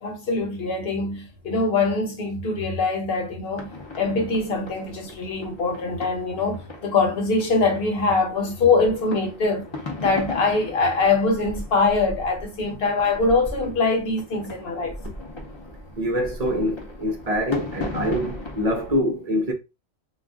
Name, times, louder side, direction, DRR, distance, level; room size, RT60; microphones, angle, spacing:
voice 1, 0.0-3.7 3.9-9.7 10.0-15.0, left 3 dB, 50° left, 1.1 m, -23 dB
sound 1, 3.5-19.0, left 2 dB, 35° left, 0.5 m, -37 dB
voice 2, 16.0-19.5, equal, 45° right, 0.5 m, -25 dB
2.4 x 2.4 x 3.4 m
omnidirectional pair, 1.3 m